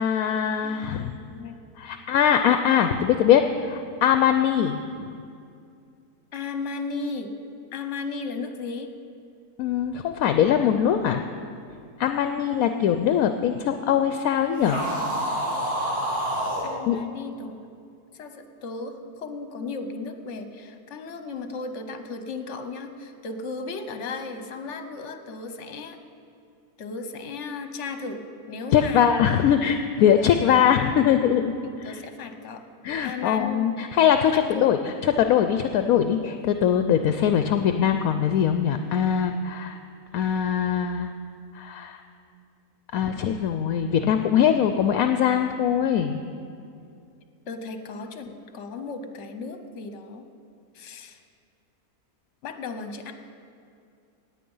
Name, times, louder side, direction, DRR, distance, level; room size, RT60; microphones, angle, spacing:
voice 1, 0.0-1.1 1.8-4.8 9.6-11.2 12.0-14.8 16.9-17.0 28.7-31.4 32.8-34.8 35.2-39.8 40.1-41.1 41.6-42.0 42.9-46.2, left 9 dB, 70° left, 7 dB, 1.0 m, -22 dB
voice 2, 0.6-1.6 6.3-7.3 7.7-8.9 16.6-17.8 18.1-26.0 26.8-29.1 30.2-31.0 31.6-32.6 33.0-33.8 34.3-34.7 47.5-50.3 50.7-51.2 52.4-53.1, left 4 dB, 55° left, 8 dB, 1.2 m, -35 dB
sound 1, 14.6-16.7, right 1 dB, 75° right, 3.2 m, -27 dB
17.5 x 9.1 x 5.5 m, 2.4 s
omnidirectional pair, 1.6 m